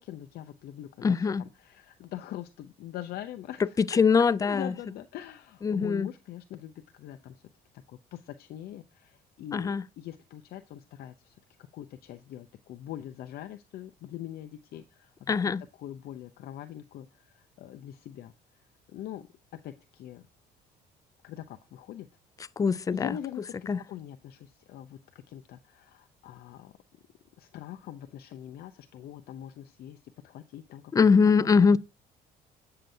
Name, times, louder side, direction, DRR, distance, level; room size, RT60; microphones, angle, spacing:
voice 1, 0.0-7.4 7.9-11.4 11.7-15.5 15.8-18.3 18.9-19.3 19.5-20.2 21.2-22.1 22.9-26.7 27.4-31.1 31.3-31.6, left 12 dB, 70° left, 0.6 m, -43 dB
voice 2, 1.0-1.4 3.8-4.7 5.6-6.1 9.5-9.8 15.3-15.6 22.6-23.1 23.7-23.8 30.9-31.8, left 5 dB, 20° left, 0.3 m, -22 dB
8.9 x 6.7 x 2.7 m
cardioid pair, 110°, 17 cm